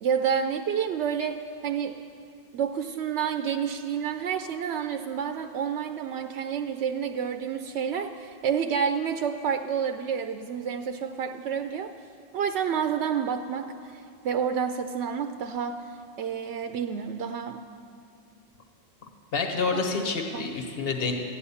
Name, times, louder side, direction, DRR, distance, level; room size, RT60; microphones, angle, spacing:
voice 1, 0.0-2.0 2.5-11.9 12.3-17.6 20.3-20.5, right 7 dB, 85° right, 7 dB, 0.9 m, -29 dB
voice 2, 19.3-21.1, left 4 dB, 60° left, 3 dB, 1.4 m, -28 dB
14.0 x 10.0 x 7.0 m, 2.5 s
omnidirectional pair, 1.1 m